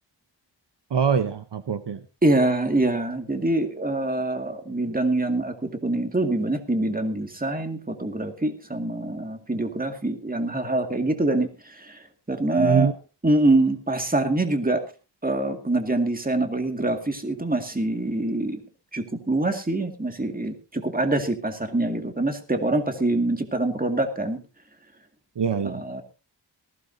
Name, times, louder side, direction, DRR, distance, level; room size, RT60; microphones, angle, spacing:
voice 1, 0.9-2.0 12.6-12.9 25.4-26.0, right 6 dB, 75° right, 10 dB, 1.0 m, -24 dB
voice 2, 2.2-12.9 13.2-14.9 15.2-18.6 18.9-24.4 25.6-26.0, right 2 dB, 20° right, 5 dB, 2.2 m, -25 dB
19.0 x 16.0 x 2.8 m, 0.32 s
wide cardioid pair, 95°, 43 cm